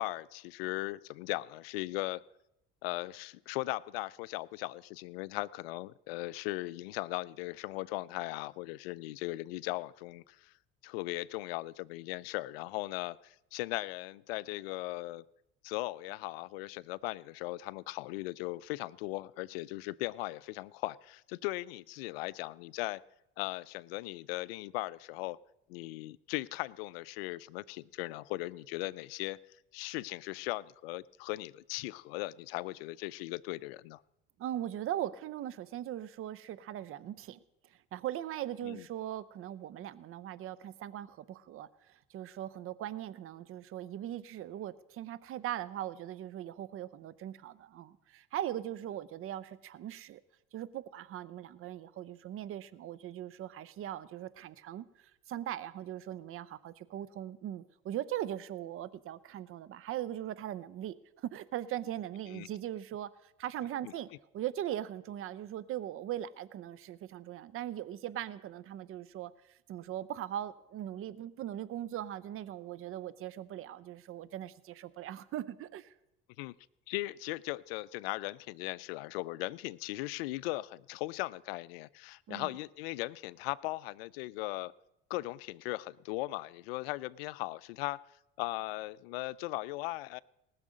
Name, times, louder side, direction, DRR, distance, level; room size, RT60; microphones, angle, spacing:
voice 1, 0.0-2.2 2.8-10.5 10.8-15.2 15.6-23.0 23.4-25.4 25.7-29.4 29.7-34.0 38.6-38.9 62.3-62.5 63.8-63.9 76.4-76.5 76.9-84.7 85.1-88.0 88.4-90.2, left 19 dB, 70° left, 22 dB, 0.4 m, -38 dB
voice 2, 34.4-37.4 37.9-50.2 50.5-54.9 55.3-64.1 64.3-69.3 69.7-75.9 82.3-82.5, right 12 dB, 45° right, 17 dB, 0.7 m, -40 dB
19.0 x 6.4 x 6.4 m, 0.84 s
hypercardioid pair, 65°, 31 cm